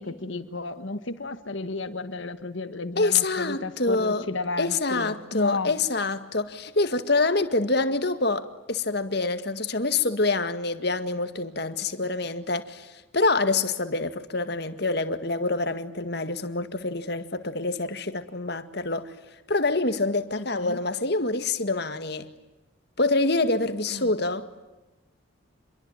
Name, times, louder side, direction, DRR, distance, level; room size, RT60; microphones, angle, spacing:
voice 1, 0.0-5.8 20.3-20.8 23.9-24.2, left 3 dB, 65° left, 1.6 m, -33 dB
voice 2, 3.0-4.3 4.6-19.1 19.5-22.3 23.0-24.5, left 3 dB, 50° left, 2.0 m, -26 dB
28.5 x 22.5 x 9.0 m
head